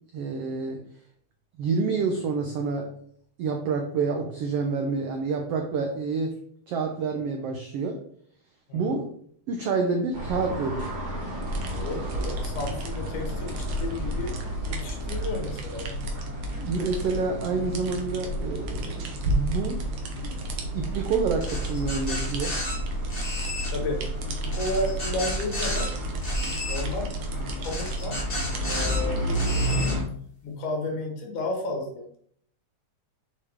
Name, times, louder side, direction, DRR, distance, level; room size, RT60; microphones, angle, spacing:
voice 1, 0.1-0.8 1.6-2.9 3.4-6.4 6.7-8.0 8.7-9.1 9.5-11.0 14.7-14.8 16.6-19.9 20.2-20.4 20.7-22.6, right 4 dB, 90° right, 4 dB, 1.3 m, -28 dB
voice 2, 8.7-9.0 11.7-16.1 23.7-25.9 26.6-27.1 27.6-28.2 28.6-29.9 30.4-32.2, left 2 dB, 75° left, 2 dB, 3.0 m, -33 dB
sound 1, 10.1-30.0, right 1 dB, 35° right, 0.7 m, -32 dB
sound 2, 11.4-29.5, right 2 dB, 65° right, 1.7 m, -36 dB
sound 3, 21.4-22.7 23.1-23.7 24.5-25.9 26.2-26.8 27.6-29.0 29.3-29.9, left 2 dB, 20° left, 2.1 m, -33 dB
6.7 x 5.2 x 3.5 m, 0.62 s
omnidirectional pair, 3.7 m